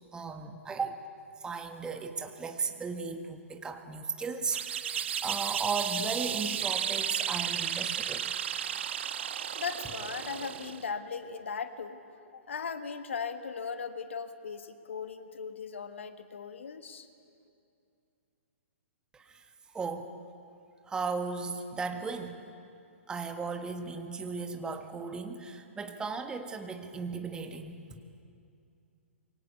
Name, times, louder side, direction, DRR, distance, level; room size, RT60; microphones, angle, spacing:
voice 1, 0.1-0.9 1.4-8.3 19.1-19.4 19.7-20.1 20.9-22.4 23.1-28.0, right 4 dB, 10° right, 6 dB, 1.6 m, -36 dB
sound 1, 4.5-10.9, right 9 dB, 55° right, 1.0 m, -33 dB
voice 2, 9.5-12.0 12.3-17.1, left 6 dB, 60° left, 10 dB, 1.5 m, -38 dB
26.0 x 22.5 x 8.5 m, 2.5 s
figure-of-eight pair, 115°, 7 cm